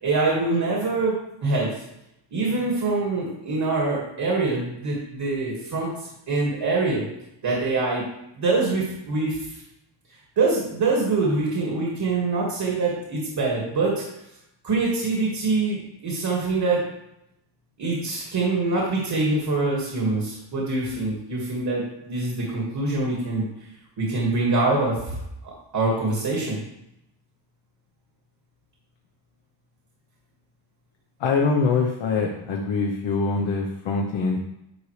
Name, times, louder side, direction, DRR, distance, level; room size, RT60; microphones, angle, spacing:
voice 1, 0.0-1.7 2.3-5.9 6.3-7.0 7.4-8.0 8.4-9.4 10.4-14.0 14.6-16.8 17.8-23.4 24.0-25.2 25.4-26.6, right 3 dB, 55° right, -3 dB, 2.0 m, -24 dB
voice 2, 31.2-34.5, left 4 dB, 70° left, -1 dB, 1.0 m, -24 dB
10.0 x 5.4 x 3.3 m, 0.84 s
wide cardioid pair, 175°, 46 cm